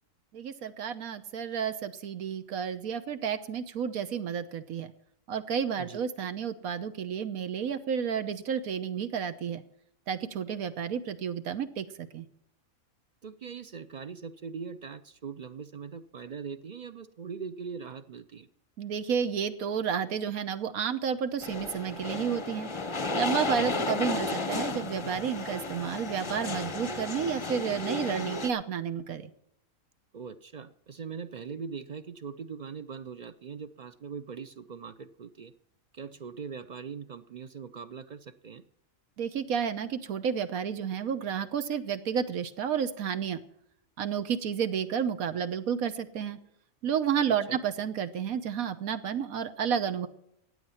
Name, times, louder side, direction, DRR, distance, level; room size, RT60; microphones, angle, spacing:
voice 1, 0.3-4.9 5.3-9.6 10.1-12.3 18.8-22.7 23.1-29.3 39.2-43.4 44.0-46.4 46.8-50.1, right 7 dB, 85° right, 11 dB, 1.4 m, -31 dB
voice 2, 13.2-18.5 23.5-23.8 30.1-35.5 35.9-38.6 47.3-47.6, right 6 dB, 55° right, 13 dB, 0.5 m, -41 dB
sound 1, 21.4-28.5, left 3 dB, 30° left, 0.6 m, -33 dB
15.5 x 9.2 x 5.7 m, 0.75 s
omnidirectional pair, 1.5 m